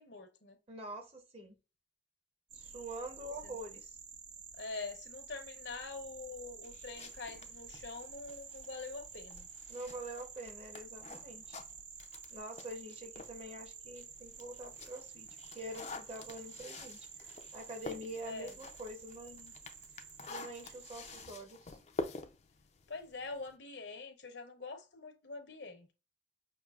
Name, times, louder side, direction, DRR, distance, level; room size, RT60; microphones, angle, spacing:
voice 1, 0.0-0.6 3.4-3.6 4.6-9.5 18.2-18.6 22.9-25.9, left 3 dB, 70° left, 0.9 m, -45 dB
voice 2, 0.7-1.6 2.5-4.0 9.7-11.6 12.3-19.5 20.3-21.8, right 1 dB, 35° right, 0.7 m, -46 dB
sound 1, 2.5-21.3, right 7 dB, 85° right, 0.8 m, -51 dB
sound 2, 6.6-13.4 13.8-23.6, left 3 dB, 35° left, 0.4 m, -48 dB
5.8 x 2.7 x 2.3 m
head